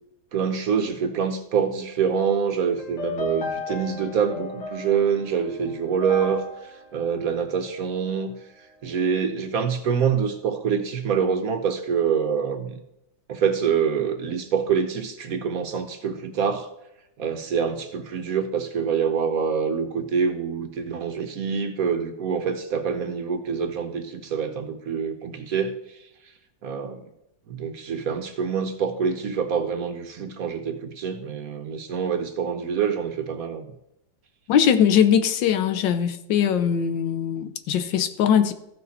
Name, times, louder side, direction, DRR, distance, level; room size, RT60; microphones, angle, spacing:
voice 1, 0.3-8.3 8.8-12.8 13.3-16.7 17.2-26.0 26.6-27.0 27.5-33.7, right 6 dB, 60° right, 1.0 m, -26 dB
sound 1, 2.8-8.1, left 2 dB, 45° left, 1.7 m, -35 dB
voice 2, 34.5-38.5, left 8 dB, 80° left, 1.4 m, -21 dB
14.5 x 6.2 x 4.1 m
omnidirectional pair, 2.0 m